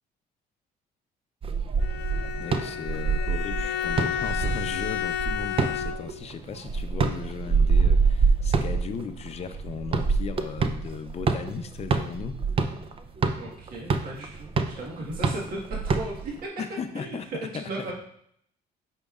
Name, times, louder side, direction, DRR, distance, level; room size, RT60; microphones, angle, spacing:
sound 1, 1.4-16.4, right 4 dB, 35° right, 0.6 m, -26 dB
Bowed string instrument, 1.8-6.3, left 9 dB, 85° left, 0.4 m, -32 dB
voice 1, 2.4-12.7 16.6-17.7, left 6 dB, 40° left, 9 dB, 0.6 m, -37 dB
voice 2, 13.3-16.3 16.9-17.2 17.5-17.9, right 2 dB, 60° right, -3 dB, 1.5 m, -36 dB
8.3 x 5.2 x 2.5 m, 0.68 s
cardioid pair, 110°, 17 cm